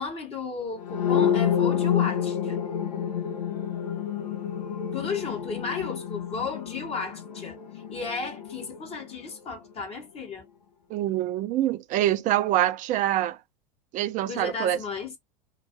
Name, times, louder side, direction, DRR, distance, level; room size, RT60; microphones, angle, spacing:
voice 1, 0.0-2.6 4.9-10.5 14.3-15.1, left 4 dB, 30° left, 0.8 m, -34 dB
sound 1, 0.8-8.6, left 9 dB, 80° left, 0.7 m, -28 dB
voice 2, 10.9-13.4 13.9-14.8, right 13 dB, 40° right, 0.5 m, -25 dB
2.3 x 2.3 x 2.6 m
hypercardioid pair, 95°, 21 cm